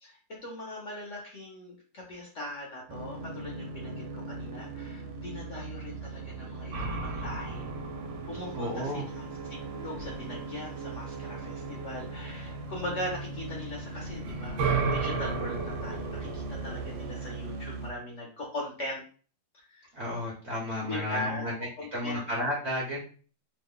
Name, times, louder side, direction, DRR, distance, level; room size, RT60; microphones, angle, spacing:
voice 1, 0.0-7.6 8.3-19.0 19.5-19.8 20.8-21.5 21.8-22.2, left 1 dB, 55° left, -2 dB, 0.9 m, -40 dB
sound 1, 2.9-17.9, right 3 dB, 85° right, 1.3 m, -39 dB
sound 2, 6.7-10.4 13.9-17.1, right 4 dB, 70° right, 1.2 m, -34 dB
voice 2, 8.5-9.0 19.9-21.5 21.9-23.0, left 1 dB, 50° right, -4 dB, 0.8 m, -32 dB
3.1 x 2.1 x 3.6 m, 0.40 s
omnidirectional pair, 2.0 m